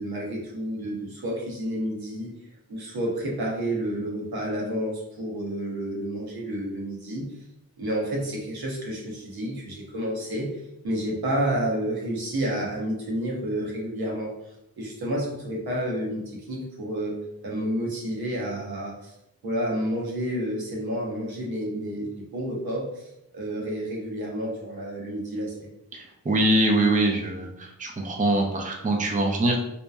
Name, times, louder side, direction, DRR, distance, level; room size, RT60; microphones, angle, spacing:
voice 1, 0.0-2.3 2.7-7.3 7.8-19.1 19.4-25.7, right 1 dB, 80° right, -3 dB, 0.8 m, -30 dB
voice 2, 25.9-27.5 27.8-29.6, right 1 dB, 20° right, 1 dB, 0.5 m, -23 dB
2.8 x 2.1 x 2.2 m, 0.85 s
cardioid pair, 40°, 37 cm